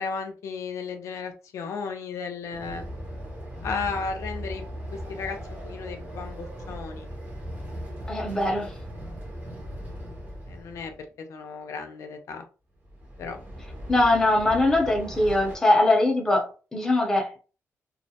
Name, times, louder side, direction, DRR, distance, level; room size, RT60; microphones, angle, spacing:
voice 1, 0.0-2.8 3.6-7.1 10.5-10.9 11.2-12.5 13.2-13.4 13.7-13.9, left 5 dB, 75° left, 5 dB, 0.4 m, -34 dB
Train, 2.5-11.0 12.8-15.6, equal, 35° right, 0.7 m, -38 dB
voice 2, 8.1-8.7 13.9-17.3, left 2 dB, 10° left, 0 dB, 0.6 m, -22 dB
2.3 x 2.1 x 2.7 m, 0.36 s
wide cardioid pair, 150°, 5 cm